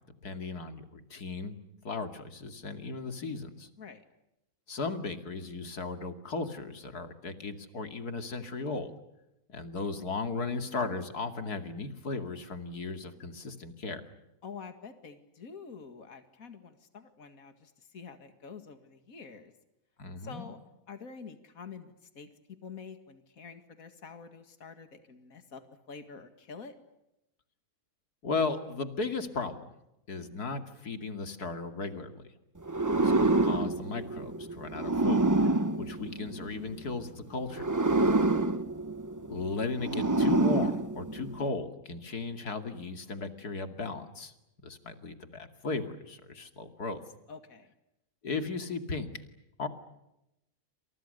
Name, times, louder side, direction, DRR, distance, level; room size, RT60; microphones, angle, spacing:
voice 1, 0.2-1.6 1.8-3.7 4.7-8.9 9.5-14.0 20.0-20.5 28.2-29.7 30.1-32.2 32.9-35.3 35.8-37.6 39.3-44.3 44.6-47.0 48.2-49.1 49.6-49.7, left 4 dB, 85° left, 8 dB, 3.0 m, -36 dB
voice 2, 14.4-19.5 20.2-20.6 20.9-22.3 22.6-25.6 25.9-26.8 38.0-38.3 47.3-47.7, left 5 dB, 65° left, 9 dB, 2.5 m, -47 dB
sound 1, 32.7-36.8 37.5-41.5, right 2 dB, 15° right, 0.7 m, -27 dB
29.0 x 27.0 x 6.7 m, 0.89 s
omnidirectional pair, 1.6 m